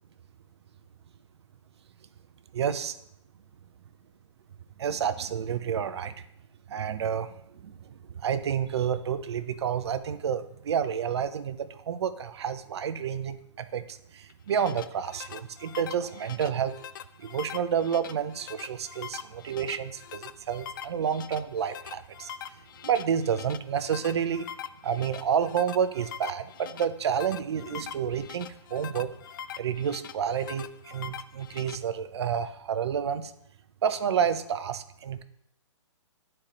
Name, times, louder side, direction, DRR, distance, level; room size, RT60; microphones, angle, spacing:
voice 1, 2.5-2.9 4.8-6.1 6.7-16.7 17.2-22.3 22.8-24.5 24.8-29.1 29.6-33.3 33.8-35.2, right 8 dB, 60° right, 11 dB, 0.7 m, -30 dB
sound 1, 14.3-31.8, left 9 dB, 45° left, 0.4 m, -43 dB
9.7 x 4.4 x 3.9 m, 0.74 s
hypercardioid pair, 145°, 16 cm